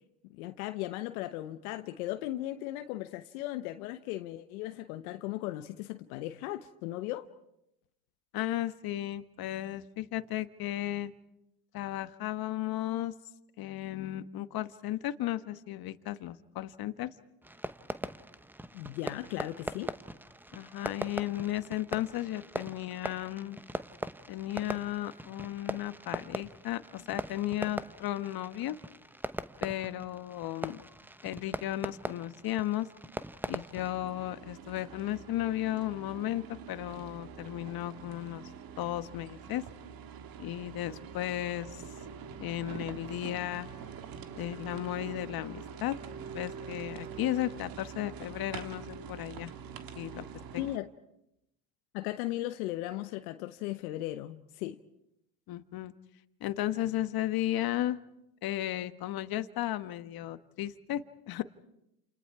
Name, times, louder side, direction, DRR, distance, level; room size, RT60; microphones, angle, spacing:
voice 1, 0.3-7.3 18.7-19.9 50.6-50.9 51.9-54.8, left 15 dB, 80° left, 1.0 m, -37 dB
voice 2, 8.3-11.1 11.7-13.1 13.6-17.1 20.5-23.6 24.3-28.8 29.6-30.8 31.2-32.9 33.5-38.5 38.8-39.6 40.4-41.8 42.4-43.7 44.3-46.0 46.3-49.5 49.9-50.3 50.5-50.6 55.5-55.9 56.4-58.0 58.4-61.4, left 14 dB, 55° left, 1.3 m, -34 dB
Fireworks, 17.4-33.9, right 1 dB, 5° right, 0.9 m, -41 dB
sound 1, 33.8-50.8, right 7 dB, 55° right, 1.8 m, -45 dB
29.0 x 28.5 x 4.8 m
hypercardioid pair, 75°, 43 cm